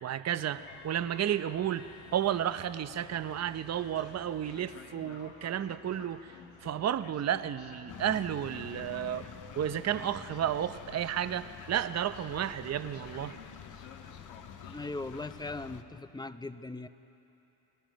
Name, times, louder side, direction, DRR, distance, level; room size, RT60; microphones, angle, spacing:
voice 1, 0.0-6.3 6.6-9.3 9.6-13.3, right 10 dB, 35° right, 12 dB, 0.7 m, -32 dB
Train, 0.5-16.0, left 6 dB, 85° left, 1.8 m, -53 dB
sound 1, 7.9-15.8, left 8 dB, 40° left, 0.8 m, -48 dB
voice 2, 14.7-16.9, left 2 dB, 10° left, 12 dB, 0.6 m, -39 dB
28.0 x 19.0 x 5.2 m, 3.0 s
cardioid pair, 85°, 46 cm